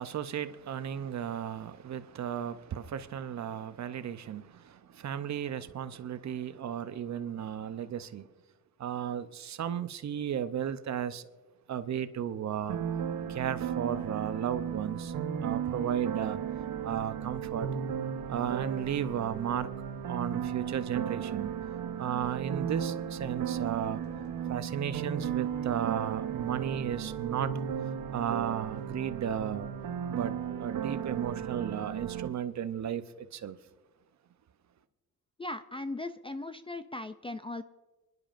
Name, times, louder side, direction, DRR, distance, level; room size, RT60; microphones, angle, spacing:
voice 1, 0.0-8.3 8.8-11.3 11.7-12.8 13.3-15.1 15.4-16.4 16.8-17.7 18.3-19.7 20.1-21.5 22.0-24.0 24.5-27.5 28.1-29.7 30.1-33.6, right 9 dB, 50° right, 0.7 m, -34 dB
sound 1, 12.7-32.3, right 8 dB, 70° right, 0.9 m, -35 dB
sound 2, 23.5-30.2, left 4 dB, 70° left, 1.1 m, -58 dB
voice 2, 35.4-37.6, left 2 dB, 15° left, 0.3 m, -38 dB
27.0 x 11.0 x 2.5 m
cardioid pair, 105°, 35 cm